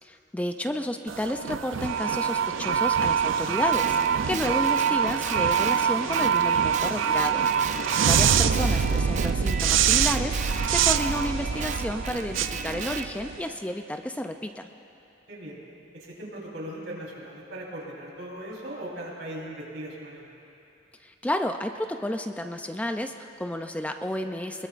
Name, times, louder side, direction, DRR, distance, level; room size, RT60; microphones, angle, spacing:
voice 1, 0.0-14.7 21.0-24.7, left 1 dB, 5° left, 6 dB, 0.4 m, -31 dB
sound 1, 1.1-13.5, right 7 dB, 90° right, 0.5 m, -24 dB
Guitar, 3.7-8.2 8.5-13.1, right 6 dB, 40° right, 0.6 m, -36 dB
voice 2, 15.3-15.6 15.9-20.3, right 1 dB, 70° right, -4 dB, 4.0 m, -39 dB
23.5 x 21.0 x 2.5 m, 2.8 s
head